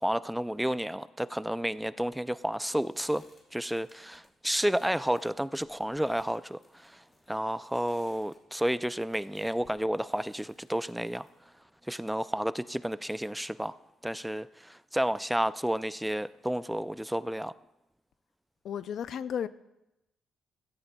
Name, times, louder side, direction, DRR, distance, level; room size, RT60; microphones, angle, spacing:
voice 1, 0.0-3.3 3.5-11.3 11.8-13.8 14.0-17.5, equal, 5° right, 0.3 m, -31 dB
sound 1, 2.1-12.5, left 2 dB, 40° left, 3.8 m, -65 dB
voice 2, 18.6-19.5, left 8 dB, 65° left, 0.4 m, -33 dB
15.5 x 14.5 x 2.3 m
cardioid pair, 90°, 0 cm